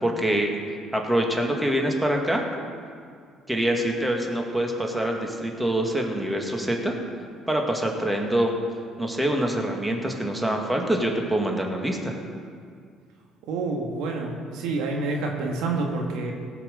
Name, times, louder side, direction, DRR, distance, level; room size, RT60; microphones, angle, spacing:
voice 1, 0.0-2.5 3.5-6.9 7.5-8.5 9.0-12.2, right 1 dB, 10° right, 1 dB, 2.0 m, -25 dB
voice 2, 13.5-16.3, right 3 dB, 75° right, 1 dB, 1.7 m, -28 dB
16.5 x 6.0 x 6.8 m, 2.2 s
hypercardioid pair, 65°, 0 cm